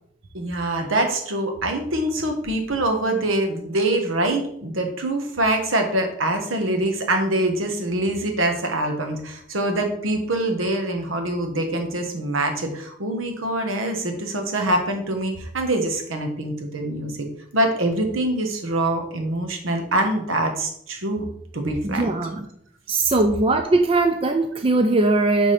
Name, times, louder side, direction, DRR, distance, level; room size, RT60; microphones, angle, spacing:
voice 1, 0.3-17.3 17.5-21.2 21.5-22.2, right 1 dB, 80° right, 4 dB, 1.1 m, -24 dB
voice 2, 21.8-22.5 22.9-25.5, right 2 dB, 25° right, 6 dB, 0.4 m, -20 dB
5.1 x 3.6 x 5.6 m, 0.69 s
head